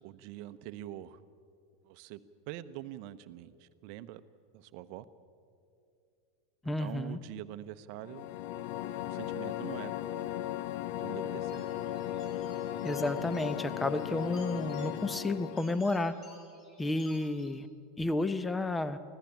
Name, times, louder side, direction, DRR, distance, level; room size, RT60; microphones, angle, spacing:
voice 1, 0.0-1.2 1.8-2.2 2.5-4.2 4.5-5.0 6.6-8.3 9.1-9.9 11.0-11.6 12.0-12.2, right 13 dB, 50° right, 13 dB, 0.8 m, -44 dB
voice 2, 6.6-7.2 12.8-16.1 16.8-17.7 18.0-19.0, left 2 dB, 10° left, 14 dB, 1.0 m, -31 dB
sound 1, 8.0-15.8, left 11 dB, 60° left, 0.7 m, -36 dB
sound 2, 11.5-17.5, left 2 dB, 40° left, 5.5 m, -57 dB
24.5 x 16.0 x 7.3 m, 2.5 s
figure-of-eight pair, 85°, 0 cm